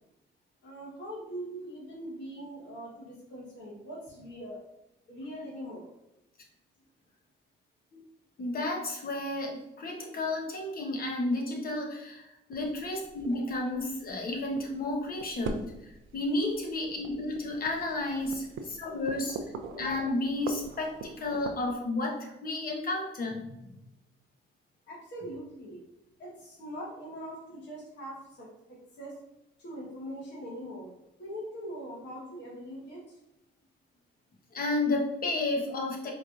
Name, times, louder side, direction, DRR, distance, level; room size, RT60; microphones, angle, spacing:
voice 1, 0.6-4.6 5.1-5.8 24.9-25.8 26.2-29.2 29.6-30.9 31.2-33.2, equal, 65° left, -4 dB, 1.4 m, -42 dB
voice 2, 8.4-15.7 16.1-19.4 19.7-23.5 34.5-36.1, left 2 dB, 45° left, 1 dB, 1.0 m, -32 dB
sound 1, 12.5-21.7, right 4 dB, 80° right, 0.5 m, -43 dB
4.5 x 3.1 x 2.5 m, 0.90 s
cardioid pair, 90°, 20 cm